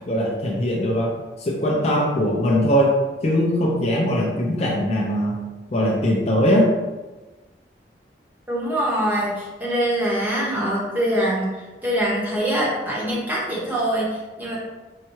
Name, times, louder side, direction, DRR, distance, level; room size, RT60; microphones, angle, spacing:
voice 1, 0.1-1.1 1.4-5.4 5.7-6.7, equal, 35° left, -2 dB, 0.5 m, -21 dB
voice 2, 8.5-14.6, right 1 dB, 10° right, -6 dB, 1.0 m, -24 dB
5.4 x 2.2 x 3.0 m, 1.2 s
head